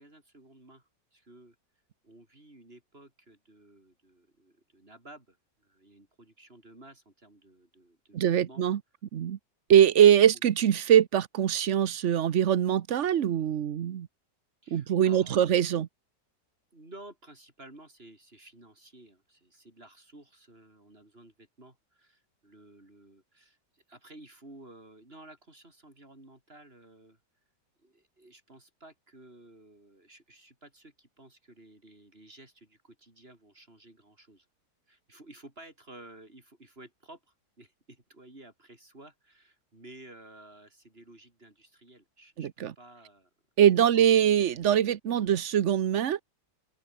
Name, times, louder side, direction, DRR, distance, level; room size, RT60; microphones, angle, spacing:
voice 1, 0.0-1.6 2.0-8.6 10.3-10.5 14.6-15.7 16.7-27.2 27.8-34.5 34.9-43.3 43.9-44.1, right 2 dB, 30° right, 6.0 m, -53 dB
voice 2, 8.1-8.8 9.1-9.4 9.7-14.1 14.7-15.9 42.4-42.7 43.6-46.2, right 10 dB, 50° right, 1.0 m, -23 dB
open air
omnidirectional pair, 1.9 m